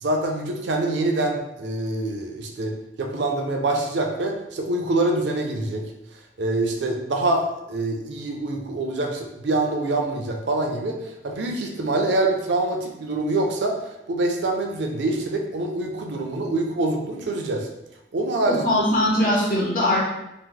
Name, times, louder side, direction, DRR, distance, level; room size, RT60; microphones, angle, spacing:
voice 1, 0.0-5.8 6.4-17.7 18.1-18.8, right 2 dB, 80° right, 2 dB, 0.5 m, -25 dB
voice 2, 18.5-20.0, left 1 dB, 50° left, -4 dB, 0.6 m, -21 dB
3.0 x 2.0 x 3.6 m, 0.88 s
head